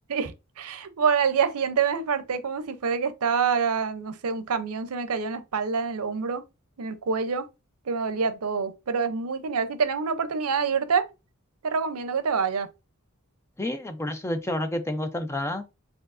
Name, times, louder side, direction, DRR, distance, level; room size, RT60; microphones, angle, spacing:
voice 1, 0.1-6.4 6.8-7.5 7.9-11.0 11.6-12.7, right 6 dB, 85° right, 0.6 m, -26 dB
voice 2, 13.6-15.6, left 1 dB, 10° left, 0.4 m, -29 dB
4.4 x 3.8 x 2.5 m
head